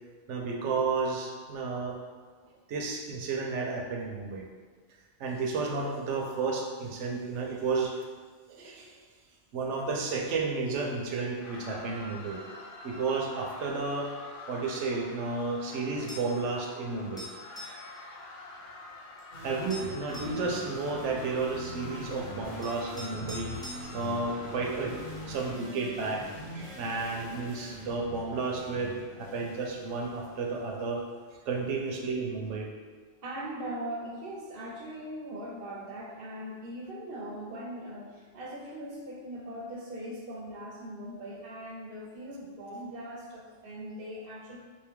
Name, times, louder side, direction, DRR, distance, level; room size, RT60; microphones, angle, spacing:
voice 1, 0.3-2.0 2.7-4.5 5.2-8.0 8.5-9.0 9.5-12.4 12.8-14.1 14.5-17.3 19.4-23.5 23.9-25.0 25.3-26.3 26.5-31.0 31.5-32.7, right 4 dB, 80° right, 1 dB, 0.9 m, -32 dB
sound 1, 11.4-25.5, left 2 dB, 75° left, 0.9 m, -47 dB
sound 2, 16.1-16.4 17.2-17.8 19.2-19.3 19.7-20.4 21.9-22.0 22.6-23.8, left 1 dB, 5° left, 0.8 m, -44 dB
sound 3, 19.3-30.8, equal, 40° left, 1.0 m, -43 dB
voice 2, 33.2-44.6, right 1 dB, 60° right, -1 dB, 0.7 m, -40 dB
3.6 x 2.7 x 3.5 m, 1.5 s
omnidirectional pair, 1.2 m